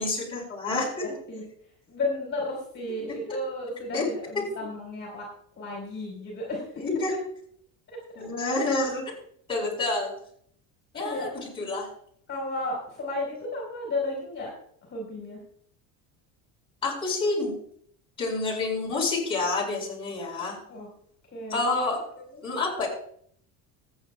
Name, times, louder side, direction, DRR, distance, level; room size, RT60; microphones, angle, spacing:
voice 1, 0.0-1.1 3.3-3.4 3.9-4.1 6.8-7.1 8.2-9.1 9.5-10.1 10.9-11.3 11.6-11.9 16.8-17.6 18.2-20.6 21.5-22.0 22.4-22.9, left 3 dB, 15° left, -4 dB, 4.5 m, -28 dB
voice 2, 1.0-1.4 1.9-5.3 5.6-6.8 7.9-8.2 10.9-11.5 12.3-14.5 14.8-15.4 20.7-20.9 21.3-21.6 22.2-22.6, left 2 dB, 30° left, -1 dB, 3.9 m, -33 dB
24.0 x 8.8 x 2.3 m, 0.62 s
cardioid pair, 175°, 37 cm